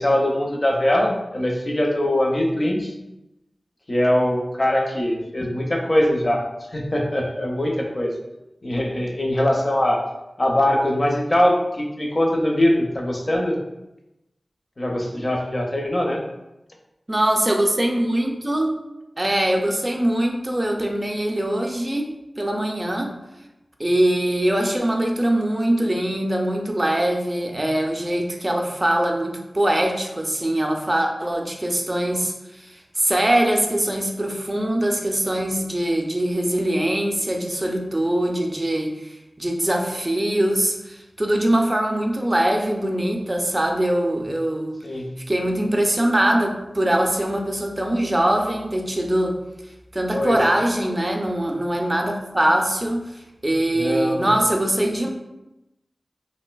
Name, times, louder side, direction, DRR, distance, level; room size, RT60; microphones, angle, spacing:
voice 1, 0.0-2.9 3.9-6.4 6.7-8.1 8.6-10.0 10.4-13.6 14.8-16.2 44.8-45.1 50.1-50.4 53.7-54.3, left 1 dB, 40° left, 0 dB, 0.5 m, -22 dB
voice 2, 17.1-18.7 19.2-23.1 23.8-44.8 45.3-49.4 49.9-55.1, right 1 dB, 25° right, 1 dB, 0.4 m, -22 dB
3.2 x 2.5 x 2.2 m, 0.94 s
wide cardioid pair, 65°, 0 cm